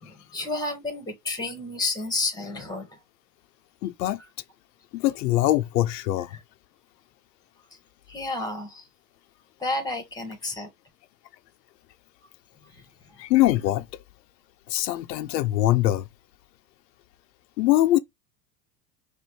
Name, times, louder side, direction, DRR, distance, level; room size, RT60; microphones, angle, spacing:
voice 1, 0.0-3.0 4.2-4.3 6.3-6.4 8.1-8.9 9.6-10.7 12.6-13.2, left 2 dB, 10° left, 1.7 m, -31 dB
voice 2, 3.8-4.2 4.9-6.4 13.2-13.9 14.7-16.1 17.6-18.0, left 15 dB, 80° left, 0.6 m, -22 dB
6.2 x 2.6 x 3.0 m
hypercardioid pair, 95°, 49 cm